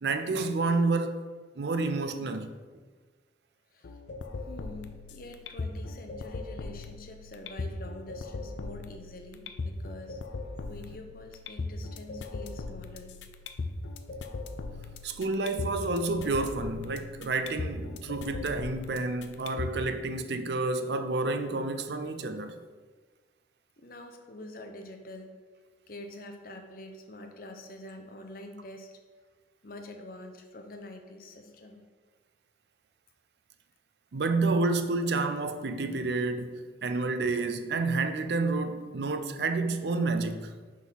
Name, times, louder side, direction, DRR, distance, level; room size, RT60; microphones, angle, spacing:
voice 1, 0.0-1.2 1.6-2.6 15.0-22.6 34.1-40.5, right 3 dB, 65° right, 0.5 m, -29 dB
sound 1, 3.8-19.8, left 3 dB, 80° left, 0.5 m, -39 dB
voice 2, 4.5-10.2 10.7-13.2 23.8-25.3 25.9-29.0 29.6-31.8, left 1 dB, 50° left, 0.8 m, -45 dB
6.0 x 3.7 x 5.7 m
head